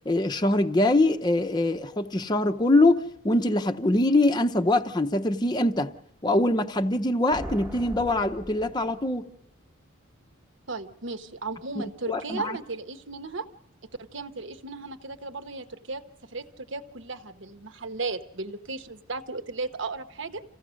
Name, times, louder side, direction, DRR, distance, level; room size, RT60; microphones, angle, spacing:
voice 1, 0.1-5.9 6.2-9.3 11.8-12.6, left 2 dB, 20° left, 0.7 m, -23 dB
sound 1, 7.3-9.4, right 1 dB, 5° right, 1.1 m, -40 dB
voice 2, 10.7-13.5 14.0-20.4, right 3 dB, 65° right, 1.1 m, -35 dB
27.5 x 16.0 x 6.4 m
head